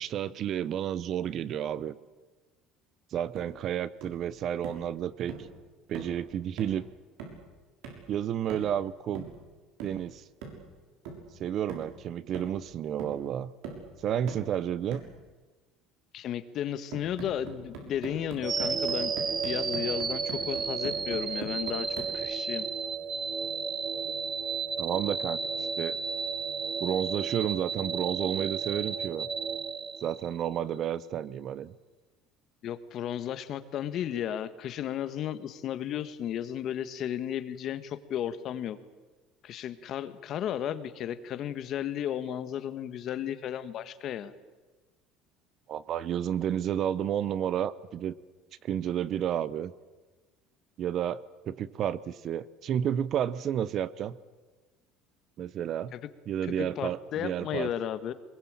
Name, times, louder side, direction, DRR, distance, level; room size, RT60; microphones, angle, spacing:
voice 1, 0.0-2.0 3.1-5.3 5.9-6.8 8.1-9.3 9.8-10.2 11.4-13.5 14.0-15.0 24.8-26.0 26.8-29.3 30.0-31.7 45.7-48.1 48.6-49.7 50.8-54.2 55.4-55.9 56.3-57.7, right 10 dB, 45° right, 18 dB, 0.9 m, -31 dB
sound 1, 3.4-3.6 4.0-4.2 4.6-4.9 5.3-5.5 5.9-6.2 6.6-6.8 7.2-7.5 7.8-8.1 8.5-8.8 9.1-9.4 9.8-10.1 10.4-10.7 11.0-11.3 11.7-12.0 12.3-12.7 13.0-13.3 13.6-13.9 14.3-14.5 14.9-15.2 16.9-22.2, right 5 dB, 80° right, 6.5 m, -42 dB
voice 2, 16.1-19.1 19.4-21.9 22.1-22.7 32.6-38.8 39.4-44.3 55.9-56.0 56.4-58.1, left 10 dB, 50° left, 12 dB, 1.5 m, -34 dB
sound 2, 18.4-30.6, right 5 dB, 25° right, 1.3 m, -33 dB
23.0 x 22.0 x 8.9 m, 1.3 s
cardioid pair, 135°, 0 cm